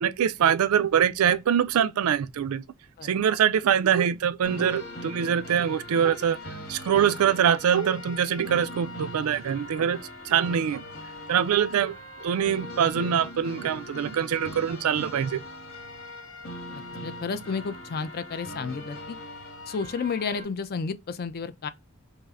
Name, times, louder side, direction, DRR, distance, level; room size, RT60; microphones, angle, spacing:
voice 1, 0.0-2.6 3.0-6.4 6.7-10.8 11.3-12.0 12.2-15.4, right 8 dB, 80° right, 0.4 m, -24 dB
sound 1, 4.4-20.4, equal, 80° left, 1.4 m, -40 dB
voice 2, 16.7-19.2 19.7-21.7, left 5 dB, 45° left, 0.4 m, -32 dB
5.4 x 2.0 x 2.4 m
head